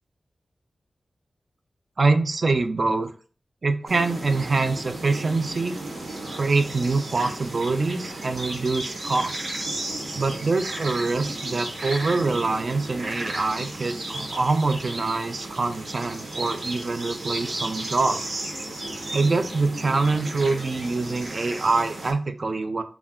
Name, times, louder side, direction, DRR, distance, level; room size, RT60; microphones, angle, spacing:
voice 1, 2.0-3.1 3.6-5.8 6.4-9.5 10.1-18.4 19.1-22.8, right 3 dB, 55° right, 8 dB, 0.3 m, -25 dB
sound 1, 3.9-22.1, right 2 dB, 90° right, 0.7 m, -34 dB
2.3 x 2.0 x 3.5 m, 0.40 s
wide cardioid pair, 75°, 0 cm